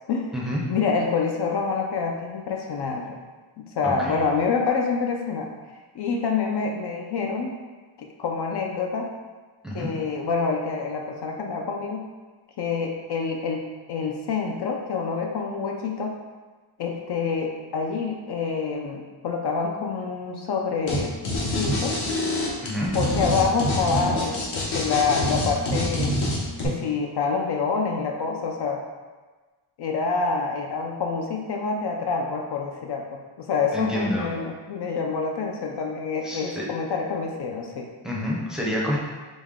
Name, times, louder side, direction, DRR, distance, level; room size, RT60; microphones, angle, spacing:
voice 1, 0.7-3.2 3.7-5.5 5.9-7.6 8.0-9.1 9.7-12.0 12.6-16.1 16.8-21.1 21.5-21.9 22.9-26.2 26.6-28.8 29.8-37.9, left 5 dB, 55° left, 1 dB, 0.5 m, -27 dB
voice 2, 3.8-4.2 9.6-9.9 22.6-22.9 33.7-34.3 36.2-36.6 38.0-39.0, equal, ahead, -4 dB, 0.6 m, -28 dB
sound 1, 20.9-21.0 21.2-26.7, left 1 dB, 75° left, 1.1 m, -25 dB
5.1 x 2.1 x 3.6 m, 1.3 s
wide cardioid pair, 145°, 48 cm